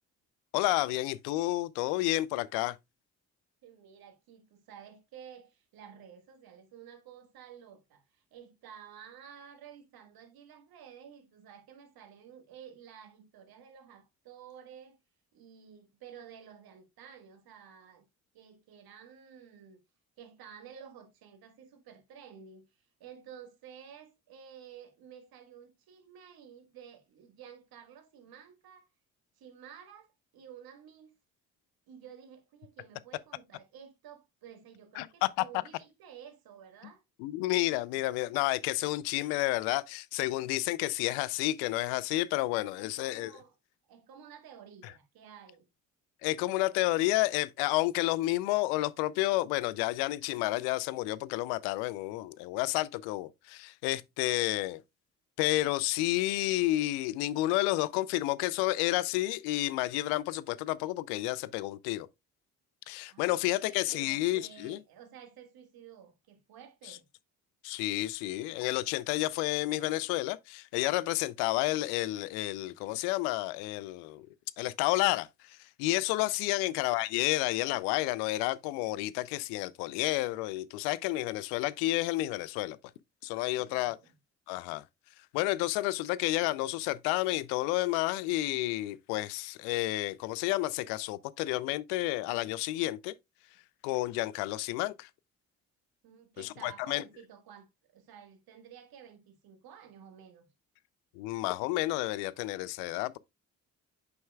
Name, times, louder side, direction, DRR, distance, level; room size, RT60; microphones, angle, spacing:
voice 1, 0.5-2.8 35.0-35.1 37.2-43.3 46.2-54.8 55.4-62.1 62.9-64.8 67.6-74.3 74.6-82.8 83.2-84.0 84.5-84.8 85.3-93.1 93.8-95.1 96.4-97.0 101.2-103.2, left 18 dB, 80° left, 0.5 m, -30 dB
voice 2, 3.6-15.0 15.3-18.0 18.3-19.8 20.2-28.9 29.4-31.1 31.9-37.0 42.8-43.5 43.9-45.7 63.1-67.0 76.5-76.8 83.5-84.1 96.0-100.5, right 8 dB, 65° right, 1.6 m, -52 dB
7.9 x 5.4 x 2.2 m
hypercardioid pair, 50°, 38 cm